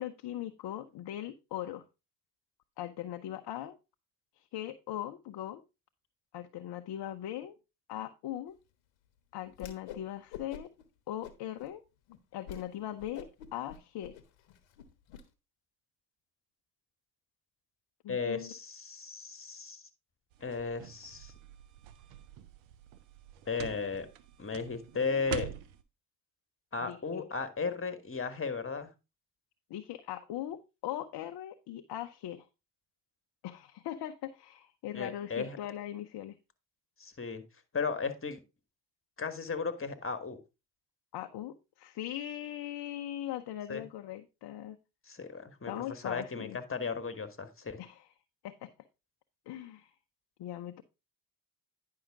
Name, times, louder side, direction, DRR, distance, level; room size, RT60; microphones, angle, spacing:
voice 1, 0.0-1.8 2.8-3.8 4.4-5.6 6.3-7.6 7.9-8.6 9.3-10.7 11.1-11.8 12.3-14.2 18.0-18.6 26.8-27.3 29.7-32.5 33.4-36.4 41.1-44.8 45.7-46.6 47.8-48.1 48.4-48.7 49.5-49.9 50.4-50.8, left 12 dB, 60° left, 6 dB, 0.8 m, -40 dB
Whoosh swoosh swish, 9.5-10.0 10.3-10.8 11.2-11.7 12.1-12.2 12.5-12.7 13.0-15.2, left 8 dB, 80° left, 1.1 m, -47 dB
voice 2, 18.1-19.8 20.4-21.3 23.5-24.1 24.4-25.5 26.7-28.9 34.9-35.6 37.0-37.4 37.7-38.4 39.2-40.4 43.7-43.8 45.1-47.8, left 5 dB, 30° left, 12 dB, 1.7 m, -35 dB
sound 1, 20.3-25.8, right 10 dB, 75° right, 0.9 m, -45 dB
10.0 x 5.8 x 3.6 m, 0.27 s
hypercardioid pair, 50°, 46 cm